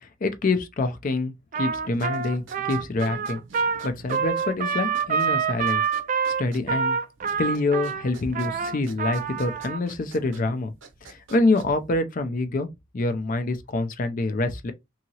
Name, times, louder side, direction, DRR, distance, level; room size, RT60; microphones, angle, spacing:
voice 1, 0.2-1.3 1.6-3.4 3.8-5.8 6.4-7.0 7.4-10.7 11.0-12.7 12.9-14.7, left 2 dB, 40° left, 0.4 m, -26 dB
Trumpet, 1.5-9.8, right 6 dB, 40° right, 0.3 m, -27 dB
sound 1, 1.9-11.9, right 4 dB, 65° right, 0.7 m, -48 dB
2.8 x 2.8 x 2.7 m
head